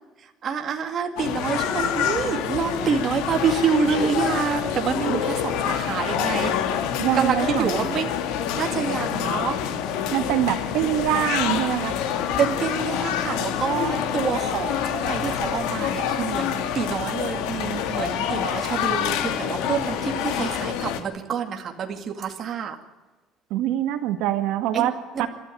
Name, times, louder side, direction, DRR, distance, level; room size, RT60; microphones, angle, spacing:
voice 1, 0.2-6.6 7.1-8.1 8.5-9.6 12.4-22.8 24.7-25.3, right 6 dB, 30° right, 4 dB, 2.2 m, -27 dB
sound 1, 1.2-21.0, left 8 dB, 85° left, 2.5 m, -27 dB
voice 2, 7.0-7.7 10.1-11.9 23.5-25.3, right 12 dB, 70° right, 7 dB, 1.8 m, -24 dB
28.5 x 13.0 x 9.3 m, 1.2 s
cardioid pair, 170°, 0 cm